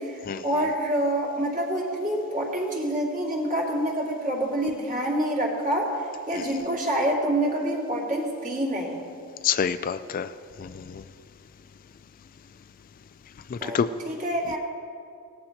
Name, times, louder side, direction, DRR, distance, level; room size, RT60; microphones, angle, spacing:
voice 1, 0.0-9.0 13.6-13.8 14.1-14.6, right 1 dB, 35° right, -3 dB, 2.4 m, -27 dB
voice 2, 9.4-10.3 10.6-11.0 13.5-13.9, left 7 dB, 40° left, 11 dB, 0.3 m, -27 dB
18.0 x 14.0 x 2.9 m, 2.4 s
head